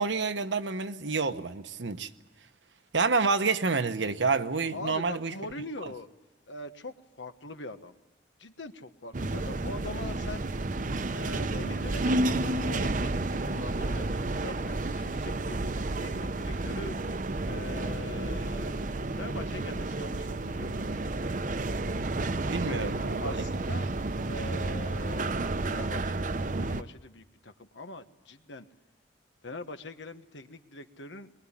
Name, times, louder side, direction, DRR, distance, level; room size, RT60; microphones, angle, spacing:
voice 1, 0.0-2.1 2.9-5.3 22.5-23.3, right 4 dB, 85° right, 1.1 m, -28 dB
voice 2, 4.7-6.1 6.5-8.0 8.4-10.5 11.1-15.6 16.0-16.9 17.4-18.8 19.2-20.8 22.6-22.9 23.2-23.9 24.3-28.7 29.4-31.3, left 2 dB, 85° left, 1.4 m, -42 dB
sound 1, 9.1-26.8, right 2 dB, 45° right, 0.7 m, -31 dB
22.5 x 21.0 x 9.9 m
head